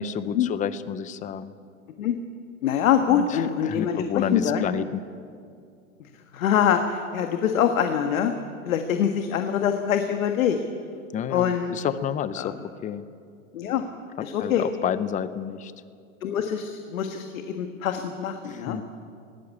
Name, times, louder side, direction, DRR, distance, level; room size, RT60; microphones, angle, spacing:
voice 1, 0.0-1.5 3.1-5.0 11.1-12.6 12.8-13.0 14.2-15.7 18.4-18.8, left 8 dB, 20° left, 15 dB, 0.7 m, -30 dB
voice 2, 2.6-4.6 6.3-8.3 8.7-10.6 11.3-11.8 12.4-12.5 13.5-13.8 14.2-14.6 16.2-18.8, left 9 dB, 75° left, 6 dB, 1.7 m, -24 dB
20.5 x 16.5 x 8.4 m, 2.3 s
hypercardioid pair, 130°, 41 cm